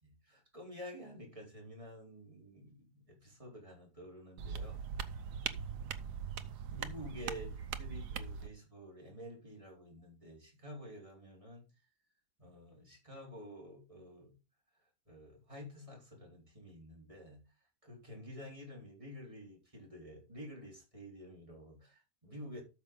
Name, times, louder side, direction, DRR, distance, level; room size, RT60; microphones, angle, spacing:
voice 1, 0.0-4.8 6.7-11.6 12.4-14.3 15.1-17.4 17.8-22.6, equal, 20° right, 4.1 m, -50 dB
sound 1, 4.4-8.5, right 7 dB, 75° right, 1.4 m, -41 dB
13.0 x 6.3 x 3.8 m
omnidirectional pair, 1.8 m